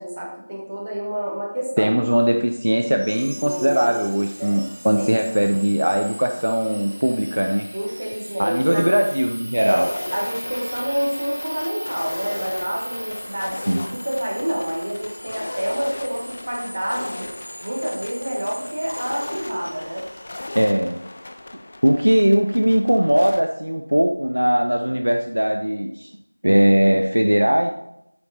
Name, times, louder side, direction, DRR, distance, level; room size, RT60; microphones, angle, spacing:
voice 1, 0.0-1.9 3.4-4.0 4.4-4.6 5.0-5.2 7.7-8.9 9.5-17.3 17.6-20.0, equal, 30° right, -2 dB, 1.3 m, -28 dB
voice 2, 1.8-7.7 8.4-9.9 13.7-13.8 20.5-21.0 21.8-26.1 26.4-27.7, equal, 65° right, 4 dB, 0.5 m, -19 dB
sound 1, 3.0-20.7, equal, 90° right, 1.1 m, -38 dB
sound 2, 9.7-23.4, left 2 dB, 25° left, 0.3 m, -37 dB
8.2 x 3.1 x 4.0 m, 0.80 s
figure-of-eight pair, 175°, 0 cm